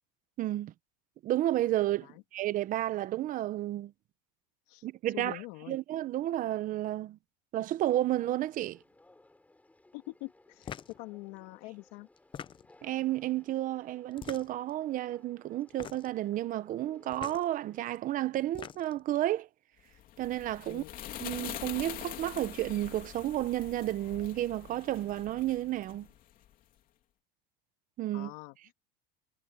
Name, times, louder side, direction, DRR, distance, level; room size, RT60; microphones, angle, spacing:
voice 1, 0.4-0.7 1.2-3.9 4.8-5.4 5.7-7.2 7.5-8.8 12.8-19.5 20.2-20.8 21.2-26.1 28.0-28.3, right 14 dB, 40° right, 0.9 m, -32 dB
voice 2, 5.1-5.8 9.9-12.1 20.7-21.0 28.1-28.7, left 22 dB, 70° left, 2.8 m, -45 dB
Conversation, 7.9-17.9, left 2 dB, 5° left, 6.9 m, -61 dB
sound 1, 10.6-11.0 12.2-12.9 14.1-14.7 15.7-16.2 17.1-17.4 18.3-19.0, left 8 dB, 25° left, 0.6 m, -44 dB
sound 2, 19.9-26.5, left 12 dB, 40° left, 3.1 m, -44 dB
supercardioid pair, 140°, 21 cm